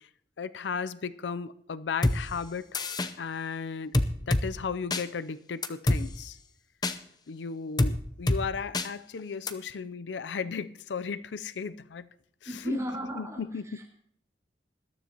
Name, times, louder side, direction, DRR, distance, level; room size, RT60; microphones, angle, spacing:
voice 1, 0.4-2.7 3.2-3.9 4.3-6.4 7.3-12.1 12.4-12.8 13.2-13.6, left 5 dB, 90° left, 0.5 m, -35 dB
sound 1, 2.0-2.2 2.7-3.1 3.9-4.4 4.9-5.0 5.6-6.0 6.8-7.0 7.8-7.9 8.3-8.4 8.7-8.9 9.5-9.6, left 2 dB, 25° left, 0.6 m, -25 dB
voice 2, 12.4-13.9, equal, 15° right, 4.4 m, -36 dB
20.5 x 13.0 x 2.9 m
head